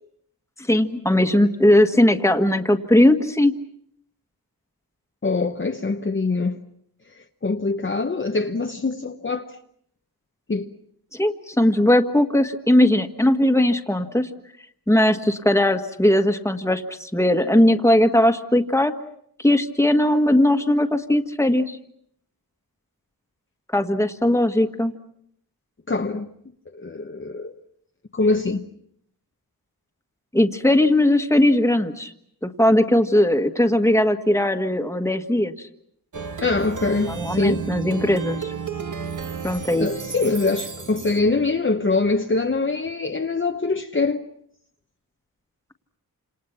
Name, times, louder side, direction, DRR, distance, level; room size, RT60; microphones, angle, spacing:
voice 1, 0.6-3.5 11.1-14.3 14.9-18.9 19.4-21.8 23.7-24.9 30.3-32.1 32.4-35.5 37.1-38.5 39.4-39.9, left 1 dB, 5° left, 1.6 m, -19 dB
voice 2, 5.2-6.6 7.4-9.5 10.5-10.7 25.9-26.3 26.7-27.6 28.1-28.6 36.4-37.7 39.8-44.2, left 3 dB, 30° left, 1.0 m, -23 dB
Plucked string instrument, 36.1-41.5, right 6 dB, 55° right, 1.4 m, -33 dB
28.5 x 27.5 x 5.9 m
wide cardioid pair, 95°, 37 cm